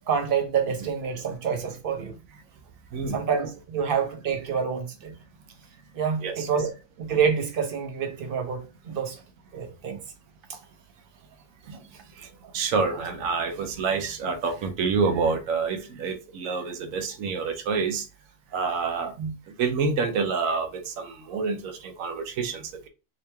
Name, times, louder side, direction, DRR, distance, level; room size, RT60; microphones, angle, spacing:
voice 1, 0.1-2.1 3.1-5.1 5.9-6.7 7.0-9.2 9.5-10.0 10.5-10.6 12.4-12.5 19.2-19.3, right 6 dB, 50° right, 0.8 m, -27 dB
voice 2, 12.2-18.1 18.5-19.1 19.5-22.9, right 5 dB, 85° right, 1.1 m, -28 dB
3.0 x 2.9 x 3.3 m
omnidirectional pair, 1.4 m